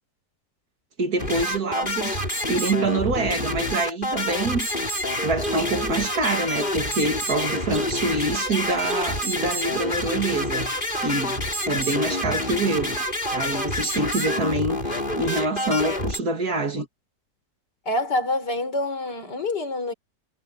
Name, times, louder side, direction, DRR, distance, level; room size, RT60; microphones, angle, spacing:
voice 1, 1.0-2.2 2.5-13.0 13.3-16.9, right 2 dB, 65° right, 3.0 m, -26 dB
sound 1, 1.2-16.2, left 1 dB, 30° left, 5.3 m, -27 dB
voice 2, 17.9-19.9, left 2 dB, 85° left, 5.2 m, -26 dB
omnidirectional pair, 1.8 m